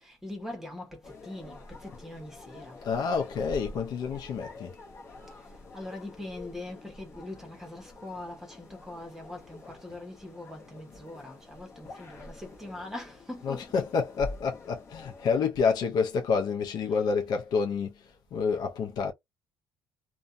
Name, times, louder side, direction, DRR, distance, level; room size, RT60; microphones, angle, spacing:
voice 1, 0.0-2.8 5.3-14.0 16.8-17.2, left 1 dB, 5° right, 1.0 m, -42 dB
sound 1, 1.0-15.4, left 2 dB, 30° left, 0.9 m, -47 dB
voice 2, 2.8-4.7 13.4-19.1, left 5 dB, 50° left, 0.6 m, -28 dB
2.6 x 2.2 x 2.5 m
cardioid pair, 165°, 9 cm